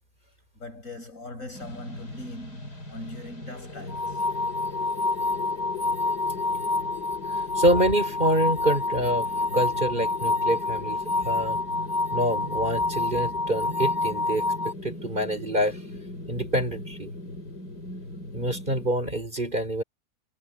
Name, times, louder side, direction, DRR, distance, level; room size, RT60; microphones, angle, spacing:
voice 1, 0.5-4.2, left 1 dB, 50° left, 7.8 m, -40 dB
sound 1, 1.5-18.9, left 3 dB, 85° left, 6.3 m, -39 dB
sound 2, 3.9-14.7, left 3 dB, 10° left, 4.2 m, -27 dB
voice 2, 7.3-11.6 12.1-15.8 16.3-17.1 18.3-19.8, right 1 dB, 30° right, 4.3 m, -26 dB
omnidirectional pair, 1.7 m